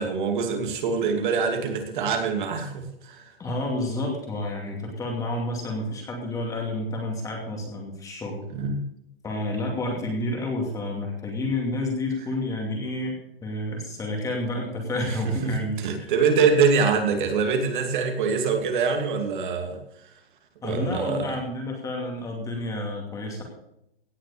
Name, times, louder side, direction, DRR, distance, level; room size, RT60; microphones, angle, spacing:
voice 1, 0.0-3.3 8.5-8.8 15.4-19.8 20.6-21.3, right 5 dB, 55° right, 4 dB, 2.7 m, -24 dB
voice 2, 3.4-8.4 9.2-16.1 20.6-23.4, left 1 dB, 10° left, 0 dB, 2.6 m, -30 dB
17.5 x 6.4 x 7.0 m, 0.78 s
hypercardioid pair, 160°, 30 cm